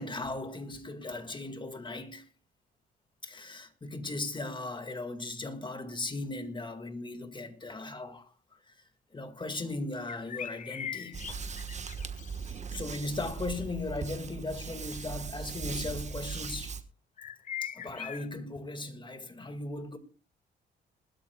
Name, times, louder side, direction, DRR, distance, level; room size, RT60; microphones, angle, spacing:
voice 1, 0.0-2.2 3.2-8.3 9.1-11.4 12.5-16.7 17.6-20.0, left 2 dB, 25° left, 1.9 m, -37 dB
sound 1, 10.1-12.5 17.2-18.3, left 9 dB, 40° left, 0.5 m, -40 dB
sound 2, 11.1-16.8, right 5 dB, 35° right, 1.3 m, -39 dB
20.5 x 12.5 x 2.3 m
cardioid pair, 90°, 20 cm